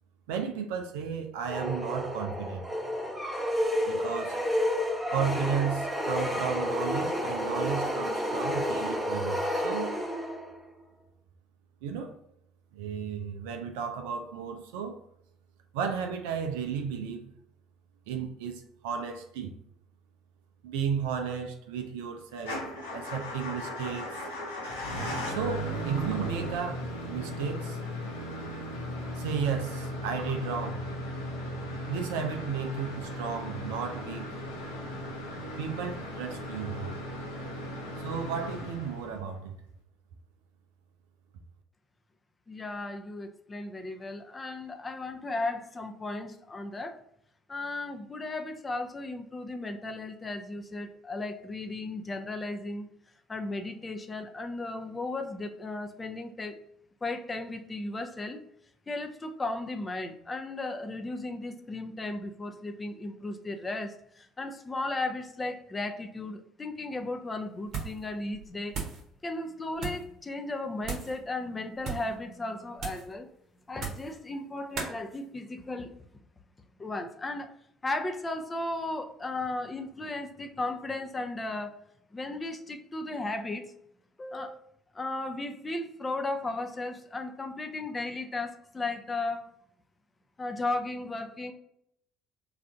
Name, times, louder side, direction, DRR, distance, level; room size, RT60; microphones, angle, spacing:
voice 1, 0.3-2.6 3.9-4.4 5.1-9.9 11.8-12.1 12.7-15.0 15.7-17.3 18.1-19.5 20.6-22.7 22.9-24.1 25.3-27.8 29.1-30.8 31.9-34.4 35.6-37.0 38.0-39.6, right 6 dB, 70° right, 0.4 m, -34 dB
sound 1, 1.5-10.6, equal, 15° right, 0.9 m, -30 dB
Motor vehicle (road) / Engine starting / Idling, 22.4-39.4, equal, 80° left, 0.7 m, -37 dB
voice 2, 42.5-47.0 47.5-52.9 53.3-56.6 57.0-58.4 58.9-68.9 69.2-73.3 73.7-75.9 76.8-77.5 77.8-81.7 82.1-83.7 84.2-84.6 84.9-89.5 90.4-91.5, left 2 dB, 25° left, 0.5 m, -35 dB
sound 2, 67.7-68.1 68.3-69.0 69.7-70.1 70.8-71.2 71.7-72.1 72.8-73.1 73.7-74.1 74.7-75.0, right 5 dB, 55° right, 0.8 m, -37 dB
3.2 x 2.5 x 3.7 m
figure-of-eight pair, 55°, 0 cm